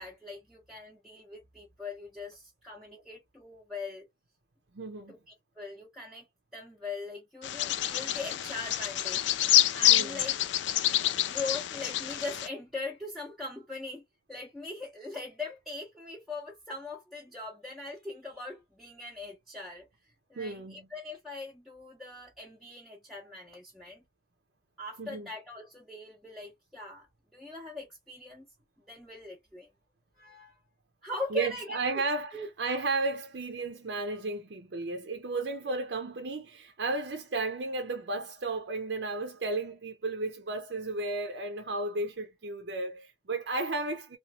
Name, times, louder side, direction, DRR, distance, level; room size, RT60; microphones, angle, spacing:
voice 1, 0.0-4.1 5.1-6.3 6.5-9.2 9.7-10.3 11.2-19.9 20.3-24.0 24.8-27.1 27.3-28.5 28.9-29.7 30.2-30.6 31.0-32.0 32.3-32.5 35.7-35.8, left 3 dB, ahead, 0.6 m, -41 dB
voice 2, 4.7-5.1 9.9-10.2 20.4-20.8 25.0-25.3 31.3-44.2, right 3 dB, 60° right, 0.5 m, -33 dB
Bird vocalization bird call bird song, 7.4-12.5, left 13 dB, 70° left, 0.4 m, -27 dB
2.9 x 2.3 x 2.6 m
head